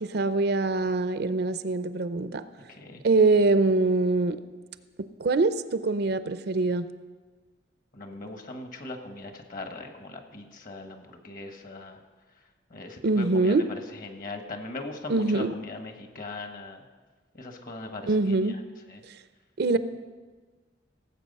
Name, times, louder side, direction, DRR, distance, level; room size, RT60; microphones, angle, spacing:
voice 1, 0.0-2.4 3.0-4.4 5.0-6.9 13.0-13.7 15.1-15.6 18.1-18.6 19.6-19.8, right 3 dB, 60° right, 12 dB, 0.5 m, -24 dB
voice 2, 2.7-3.0 7.9-12.0 12.7-13.5 14.0-16.8 17.3-18.1 18.9-19.0, left 2 dB, 50° left, 5 dB, 1.4 m, -40 dB
17.0 x 7.9 x 5.4 m, 1.4 s
head